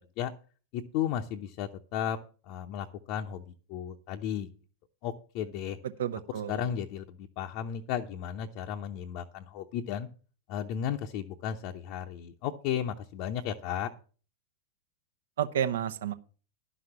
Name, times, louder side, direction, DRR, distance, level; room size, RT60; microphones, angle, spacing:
voice 1, 0.7-2.2 2.5-3.4 3.7-4.5 5.0-5.8 6.5-10.1 10.5-13.9, left 9 dB, 45° left, 0.7 m, -34 dB
voice 2, 5.8-6.7 15.4-16.1, right 9 dB, 60° right, 0.8 m, -31 dB
11.5 x 6.2 x 7.1 m
figure-of-eight pair, 90°, 0 cm